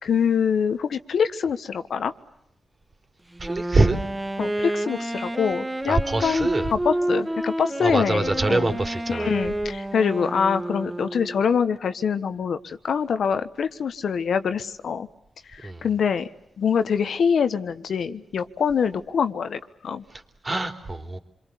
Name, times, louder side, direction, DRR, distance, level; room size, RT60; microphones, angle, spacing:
voice 1, 0.0-2.1 4.4-8.8 9.1-15.1 15.5-16.3 16.6-20.0, left 6 dB, 75° left, 1.3 m, -25 dB
Wind instrument woodwind instrument, 3.3-11.4, right 1 dB, 15° right, 2.1 m, -29 dB
voice 2, 3.4-4.0 5.9-6.7 7.8-9.3 15.6-15.8 20.1-21.2, right 2 dB, 40° right, 3.6 m, -24 dB
27.5 x 23.0 x 8.4 m
cardioid pair, 55°, 0 cm